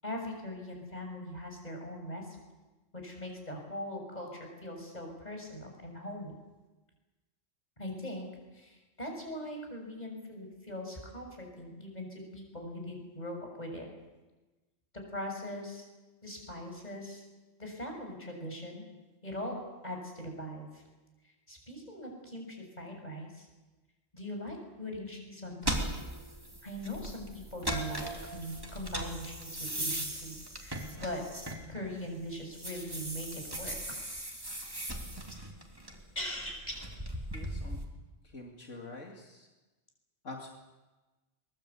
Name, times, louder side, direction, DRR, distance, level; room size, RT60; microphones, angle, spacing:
voice 1, 0.0-2.4 2.9-6.3 7.8-8.3 8.5-13.9 15.1-15.9 16.2-17.2 17.6-18.8 19.2-19.6 19.8-20.8 21.5-23.5 24.1-25.9 26.6-31.2 31.7-34.0 36.1-36.9, equal, 35° left, 2 dB, 6.8 m, -41 dB
sound 1, 25.6-32.0 32.4-37.8, right 1 dB, 20° right, 3.1 m, -38 dB
voice 2, 37.3-37.8 38.2-39.5 40.2-40.5, left 2 dB, 75° left, 0 dB, 2.8 m, -45 dB
23.0 x 21.0 x 8.4 m, 1.2 s
omnidirectional pair, 1.3 m